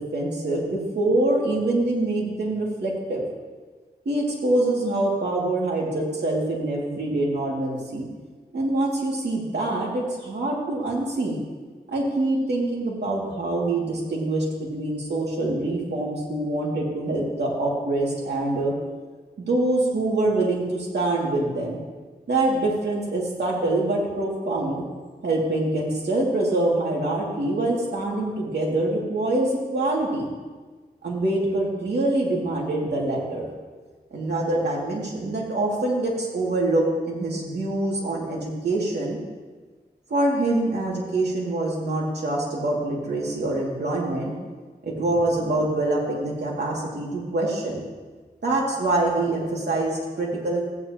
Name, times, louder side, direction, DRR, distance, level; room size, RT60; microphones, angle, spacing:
voice 1, 0.0-3.2 4.1-8.1 8.5-11.4 11.9-18.7 19.4-21.8 22.3-24.8 25.2-30.3 31.0-33.5 34.1-39.2 40.1-44.3 44.8-47.8 48.4-50.6, right 2 dB, 85° right, -3 dB, 2.3 m, -25 dB
14.5 x 9.4 x 2.9 m, 1.4 s
wide cardioid pair, 65°, 17 cm